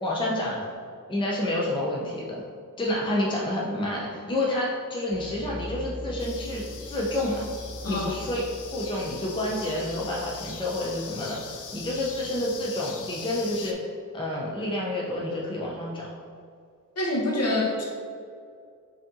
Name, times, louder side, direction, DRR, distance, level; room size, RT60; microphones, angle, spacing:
voice 1, 0.0-0.6 1.1-2.4 2.8-7.4 7.9-8.4 8.7-13.8 14.1-16.1, left 1 dB, 15° left, -4 dB, 0.6 m, -29 dB
sound 1, 5.1-12.6, left 1 dB, 40° right, 1.1 m, -42 dB
sound 2, 6.2-13.7, left 6 dB, 70° left, 0.5 m, -41 dB
voice 2, 17.0-17.8, left 1 dB, 50° left, -2 dB, 1.0 m, -26 dB
5.0 x 2.8 x 3.7 m, 2.2 s
wide cardioid pair, 145°, 32 cm